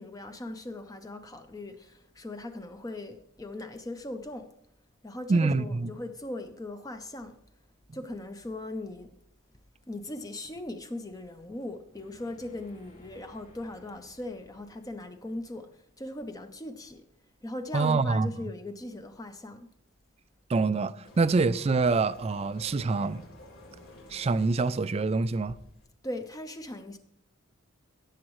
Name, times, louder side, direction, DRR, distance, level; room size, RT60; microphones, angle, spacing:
voice 1, 0.0-4.5 5.0-7.4 7.9-9.1 9.9-17.0 17.4-19.7 26.0-27.0, left 1 dB, 15° left, 0.6 m, -39 dB
voice 2, 5.3-5.9 17.7-18.3 20.5-23.2 24.1-25.6, right 3 dB, 30° right, 0.3 m, -26 dB
sound 1, 11.9-17.0, left 1 dB, 35° left, 3.7 m, -59 dB
sound 2, 21.0-25.9, left 1 dB, 75° left, 3.3 m, -51 dB
17.0 x 7.3 x 3.1 m
head